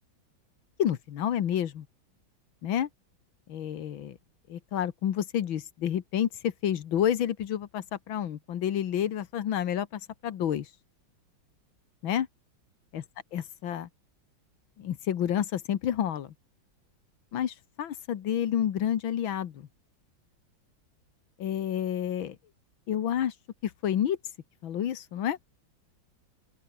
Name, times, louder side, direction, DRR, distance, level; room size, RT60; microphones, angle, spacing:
voice 1, 0.8-1.9 2.6-2.9 3.5-4.2 4.5-10.7 12.0-12.3 12.9-13.0 13.3-13.9 14.8-16.3 17.3-19.7 21.4-22.4 22.9-23.3 23.6-24.2 24.6-25.4, left 10 dB, 75° left, 2.0 m, -29 dB
open air
omnidirectional pair, 2.2 m